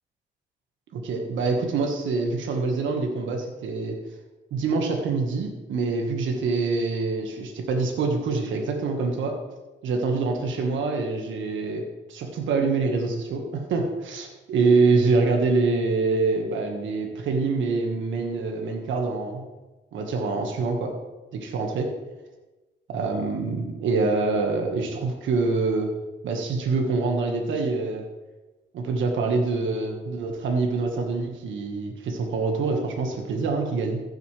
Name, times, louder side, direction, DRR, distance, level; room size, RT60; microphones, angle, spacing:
voice 1, 0.9-4.0 4.5-9.4 9.8-19.4 19.9-20.9 21.3-21.9 22.9-25.9 26.2-28.0 28.7-34.0, right 3 dB, 75° right, 2 dB, 1.6 m, -25 dB
15.0 x 6.8 x 3.3 m, 1.1 s
cardioid pair, 90°, 20 cm